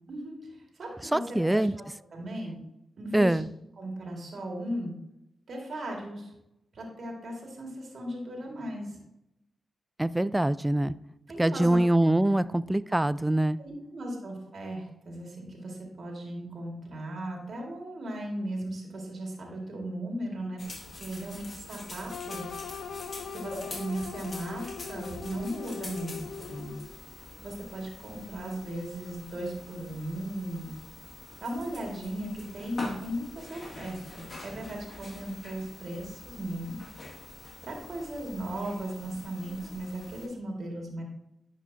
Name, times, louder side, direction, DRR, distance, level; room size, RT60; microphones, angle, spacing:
voice 1, 0.1-1.8 2.1-2.6 3.0-3.4 3.8-4.9 5.5-6.3 6.7-9.0 11.3-11.8 12.3-12.4 13.6-22.4 23.3-26.8 27.4-30.7 31.4-36.8 37.6-41.0, right 1 dB, 65° right, 0 dB, 2.0 m, -37 dB
voice 2, 1.1-1.7 3.1-3.5 10.0-10.9 11.4-13.6, right 1 dB, 15° right, 17 dB, 0.3 m, -24 dB
sound 1, 20.6-40.3, left 2 dB, 55° left, 2.1 m, -45 dB
sound 2, 22.1-27.0, left 6 dB, 75° left, 0.5 m, -41 dB
10.5 x 4.9 x 2.8 m, 0.85 s
supercardioid pair, 50°, 0 cm